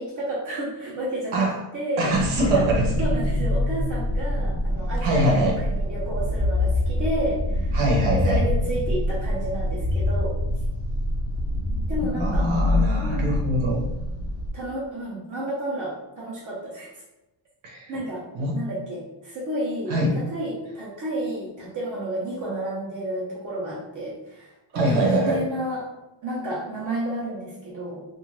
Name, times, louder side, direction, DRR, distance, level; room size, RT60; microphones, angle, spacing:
voice 1, 0.0-2.1 2.5-2.6 3.0-7.8 8.1-10.4 11.9-12.5 13.0-13.4 14.5-16.9 17.9-18.3 18.5-19.9 20.3-25.9 26.2-28.1, right 1 dB, 40° right, -6 dB, 0.7 m, -31 dB
voice 2, 2.0-2.9 5.0-5.6 7.7-8.4 11.4-11.9 12.2-13.8 17.6-17.9 18.3-18.6 19.9-20.1 24.7-25.4, right 1 dB, 80° right, -2 dB, 1.0 m, -23 dB
sound 1, 2.1-14.5, left 1 dB, 35° left, 0.4 m, -25 dB
2.5 x 2.5 x 3.0 m, 0.98 s
cardioid pair, 165°, 48 cm